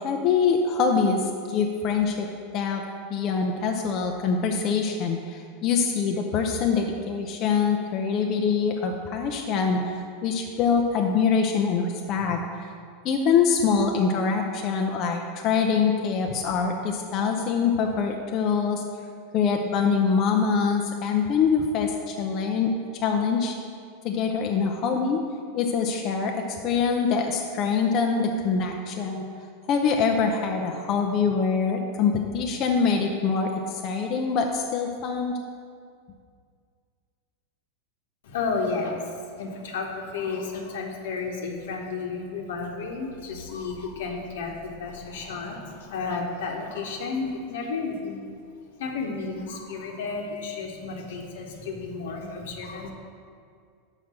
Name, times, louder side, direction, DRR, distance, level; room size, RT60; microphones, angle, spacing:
voice 1, 0.0-2.3 2.5-2.8 3.1-9.8 10.2-12.4 13.0-18.8 19.3-22.7 23.0-23.5 24.0-25.2 25.5-26.3 26.6-29.2 29.7-35.4, left 5 dB, 40° left, 2 dB, 0.6 m, -24 dB
voice 2, 38.2-48.4 48.8-52.9, left 4 dB, 80° left, 1 dB, 1.1 m, -32 dB
5.8 x 4.9 x 6.2 m, 2.2 s
supercardioid pair, 135°, 0 cm